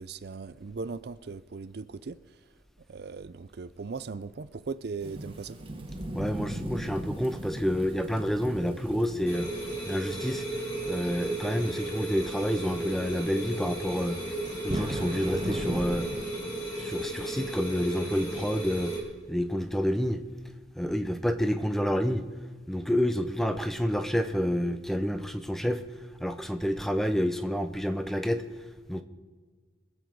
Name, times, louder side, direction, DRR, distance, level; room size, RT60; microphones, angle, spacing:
voice 1, 0.0-2.2 2.9-5.6, right 4 dB, 55° right, 14 dB, 0.4 m, -38 dB
Thunderstorm / Rain, 5.0-16.2, right 1 dB, 25° right, 1.4 m, -39 dB
voice 2, 6.1-9.5 9.9-10.4 10.9-14.3 14.6-16.1 16.8-19.0 19.3-20.2 20.8-22.3 22.7-25.8 26.2-28.4 28.9-29.0, equal, ahead, 8 dB, 0.7 m, -29 dB
sound 1, 9.3-19.0, right 1 dB, 20° left, 3.4 m, -35 dB
24.5 x 8.3 x 4.8 m, 1.5 s
head